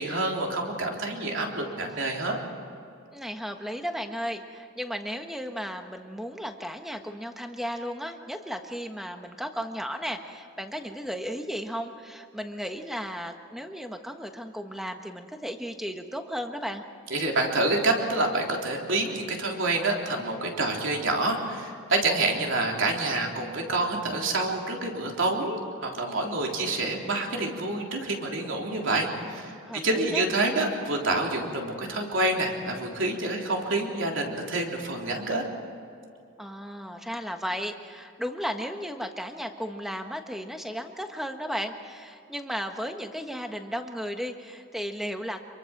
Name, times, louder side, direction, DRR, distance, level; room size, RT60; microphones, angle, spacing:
voice 1, 0.0-2.4 17.1-29.5 29.8-35.4, right 2 dB, 60° right, 0 dB, 3.6 m, -27 dB
voice 2, 3.1-16.8 29.6-30.3 36.4-45.4, equal, ahead, 5 dB, 1.3 m, -35 dB
27.0 x 23.0 x 6.1 m, 2.6 s
head